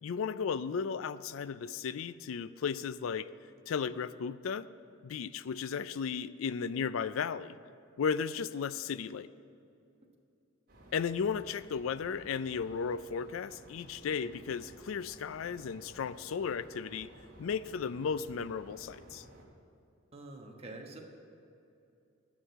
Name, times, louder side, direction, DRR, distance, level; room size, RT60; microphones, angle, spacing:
voice 1, 0.0-3.3 3.7-4.7 5.0-7.6 8.0-9.3 10.9-17.1 17.4-19.2, left 6 dB, 70° left, 16 dB, 0.4 m, -35 dB
sound 1, 10.7-19.4, right 1 dB, 45° right, 2.8 m, -55 dB
voice 2, 20.1-21.0, right 2 dB, 30° right, 1 dB, 1.3 m, -46 dB
10.0 x 6.2 x 8.3 m, 2.7 s
head